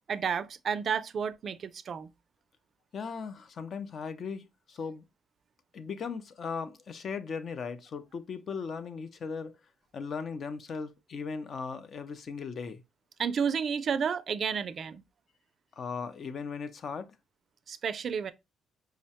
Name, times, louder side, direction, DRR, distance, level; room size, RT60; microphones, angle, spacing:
voice 1, 0.1-2.1 13.2-15.0 17.7-18.3, right 6 dB, 55° right, 0.3 m, -31 dB
voice 2, 2.9-5.0 5.7-9.6 9.9-12.8 15.7-17.2, left 5 dB, 55° left, 0.5 m, -38 dB
4.7 x 2.1 x 2.8 m
cardioid pair, 90°, 0 cm